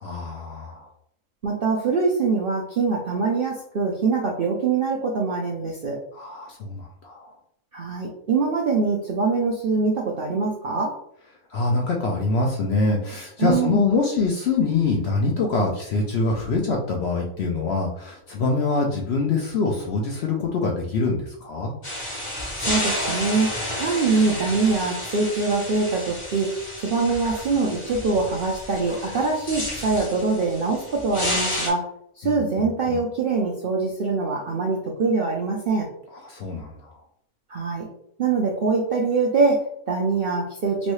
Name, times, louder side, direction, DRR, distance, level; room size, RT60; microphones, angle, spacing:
voice 1, 0.0-0.9 6.1-7.3 11.5-21.7 32.2-33.0 36.1-36.9, left 3 dB, 65° left, 0 dB, 0.7 m, -25 dB
voice 2, 1.4-6.0 7.7-11.0 13.4-13.9 22.6-31.9 32.2-35.9 37.5-37.9 38.2-40.9, right 4 dB, 65° right, -2 dB, 0.5 m, -23 dB
sound 1, 21.8-31.7, left 1 dB, 25° left, 0.8 m, -31 dB
3.1 x 2.7 x 3.1 m, 0.71 s
omnidirectional pair, 1.5 m